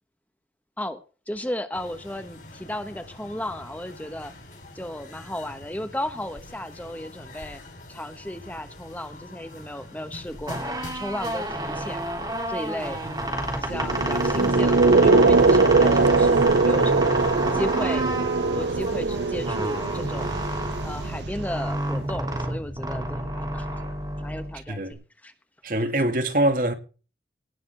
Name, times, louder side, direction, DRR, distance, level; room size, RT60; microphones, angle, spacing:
voice 1, 0.8-4.3 4.7-7.6 7.9-12.2 12.5-13.0 13.5-17.1 17.5-18.1 18.4-20.3 20.8-25.0 25.2-25.3, left 1 dB, 10° left, 1.1 m, -34 dB
sound 1, 1.7-21.2, left 1 dB, 45° left, 6.5 m, -45 dB
sound 2, 10.3-24.9, right 1 dB, 20° right, 3.2 m, -30 dB
sound 3, 13.6-21.7, right 3 dB, 75° right, 0.6 m, -21 dB
voice 2, 24.7-25.0 25.6-26.7, right 1 dB, 50° right, 2.4 m, -23 dB
18.5 x 6.6 x 6.7 m
head